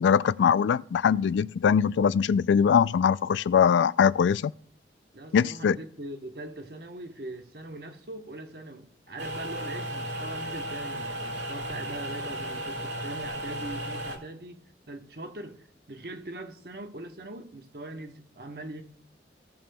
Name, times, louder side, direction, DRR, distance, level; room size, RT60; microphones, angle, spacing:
voice 1, 0.0-4.5 5.3-5.8, left 7 dB, 90° left, 0.3 m, -22 dB
voice 2, 5.1-18.8, right 1 dB, 55° right, 1.0 m, -41 dB
sound 1, 9.2-14.2, right 1 dB, 85° right, 1.8 m, -35 dB
17.5 x 7.0 x 2.2 m
head